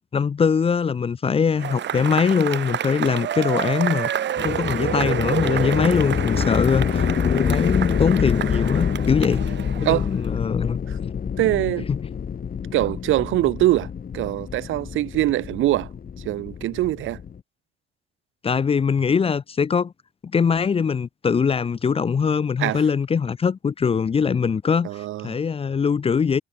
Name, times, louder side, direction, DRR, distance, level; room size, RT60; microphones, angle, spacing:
voice 1, 0.1-4.1 4.4-9.4 9.8-10.8 11.9-12.0 18.4-19.9 20.3-26.4, left 6 dB, 30° left, 0.5 m, -22 dB
Cheering / Applause / Crowd, 1.6-10.3, right 10 dB, 65° right, 2.8 m, -29 dB
sound 1, 4.4-17.4, left 7 dB, 45° left, 2.7 m, -26 dB
voice 2, 11.4-11.9 12.7-13.9 14.1-15.9 16.2-17.2 22.6-22.8 24.8-25.3, right 15 dB, 85° right, 1.3 m, -23 dB
cardioid pair, 90°, 20 cm